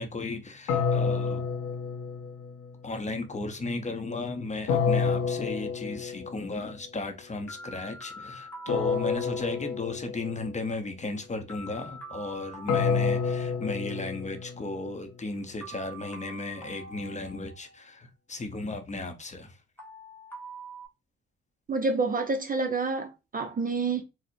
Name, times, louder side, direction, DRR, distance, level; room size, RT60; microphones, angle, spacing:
voice 1, 0.0-1.4 2.8-19.6, left 2 dB, 25° left, 0.6 m, -35 dB
sound 1, 0.7-2.7 4.7-6.5 8.7-10.5 12.7-14.9, left 5 dB, 85° left, 0.6 m, -29 dB
sound 2, 4.7-5.8 7.5-9.8 11.5-13.8 15.6-17.9 19.8-20.9, right 2 dB, 5° left, 1.0 m, -45 dB
voice 2, 21.7-24.0, right 3 dB, 30° right, 0.5 m, -28 dB
4.1 x 2.0 x 2.5 m
cardioid pair, 90°, 30 cm